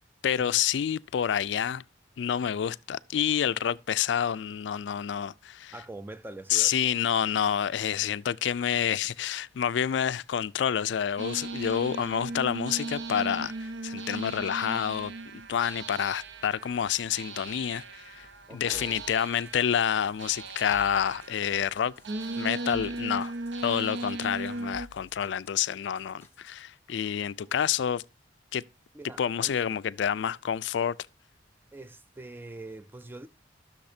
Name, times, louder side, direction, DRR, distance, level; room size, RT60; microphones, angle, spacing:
voice 1, 0.2-1.8 2.2-5.7 6.5-15.1 15.5-21.9 22.4-23.3 23.6-28.0 28.5-28.6 29.2-30.9, left 8 dB, 70° left, 0.3 m, -28 dB
voice 2, 5.7-6.7 18.5-19.0 28.9-29.8 31.7-33.3, right 2 dB, 10° right, 0.3 m, -44 dB
sound 1, 11.2-24.9, right 2 dB, 70° right, 0.7 m, -37 dB
sound 2, 18.7-26.6, left 1 dB, 10° left, 1.2 m, -55 dB
11.5 x 6.4 x 2.7 m
head